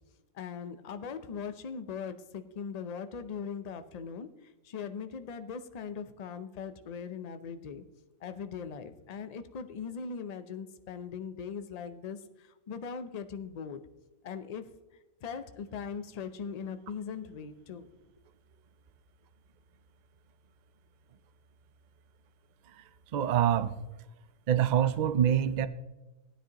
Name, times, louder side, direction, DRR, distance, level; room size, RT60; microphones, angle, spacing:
voice 1, 0.3-7.8 8.2-13.8 14.2-14.7 15.2-17.9, left 6 dB, 55° left, 9 dB, 0.4 m, -40 dB
voice 2, 23.1-23.7 24.5-25.7, right 10 dB, 85° right, 13 dB, 0.4 m, -25 dB
15.5 x 10.0 x 2.9 m, 1.1 s
omnidirectional pair, 1.4 m